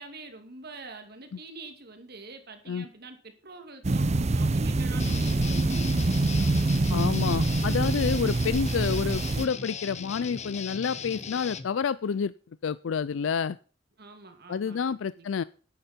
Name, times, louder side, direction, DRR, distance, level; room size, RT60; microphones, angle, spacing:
voice 1, 0.0-6.5 14.0-15.3, right 3 dB, 55° right, 6 dB, 2.4 m, -46 dB
sound 1, 3.8-9.5, right 2 dB, 35° right, 0.6 m, -25 dB
Guitar, 5.0-11.7, left 6 dB, 35° left, 0.9 m, -39 dB
voice 2, 6.9-12.3 12.6-13.6 14.5-15.4, left 6 dB, 85° left, 17 dB, 0.4 m, -29 dB
11.0 x 10.5 x 4.4 m, 0.39 s
head